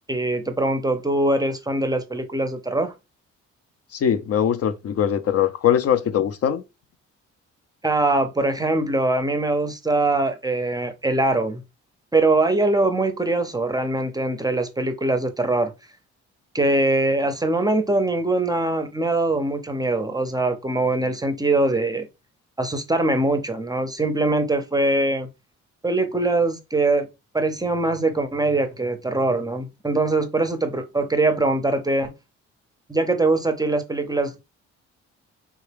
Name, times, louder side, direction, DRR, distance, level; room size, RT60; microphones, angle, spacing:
voice 1, 0.1-2.9 7.8-11.6 12.1-15.7 16.5-22.1 22.6-25.3 25.8-27.1 27.3-32.1 32.9-34.4, right 2 dB, 15° right, 0.5 m, -22 dB
voice 2, 3.9-6.6, left 9 dB, 55° left, 0.5 m, -21 dB
3.4 x 2.2 x 3.3 m
cardioid pair, 90°, 30 cm